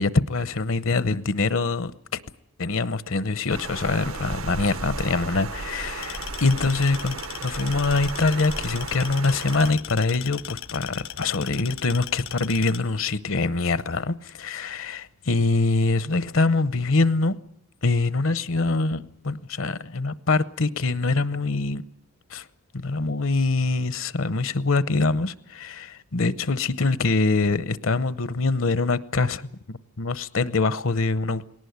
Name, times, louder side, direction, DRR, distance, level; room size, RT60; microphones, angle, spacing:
voice 1, 0.0-2.2 2.6-17.4 17.8-21.8 22.3-22.4 22.7-31.4, left 3 dB, 65° left, 0.8 m, -24 dB
Water, 3.5-9.7, right 3 dB, 75° right, 1.1 m, -35 dB
sound 1, 6.0-12.8, left 10 dB, 80° left, 1.3 m, -38 dB
20.0 x 18.5 x 9.5 m
head